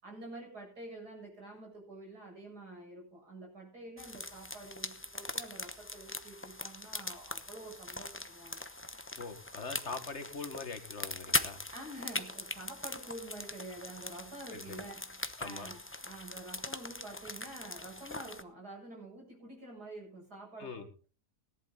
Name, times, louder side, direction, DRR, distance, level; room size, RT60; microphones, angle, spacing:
voice 1, 0.0-8.6 11.7-21.1, right 2 dB, 80° right, -1 dB, 8.0 m, -48 dB
sound 1, 4.0-18.4, left 2 dB, 10° left, 0.6 m, -41 dB
voice 2, 9.2-11.6 14.5-14.8 15.4-15.7 20.6-20.9, left 4 dB, 45° left, 8 dB, 1.9 m, -42 dB
18.0 x 11.0 x 4.0 m, 0.36 s
omnidirectional pair, 1.7 m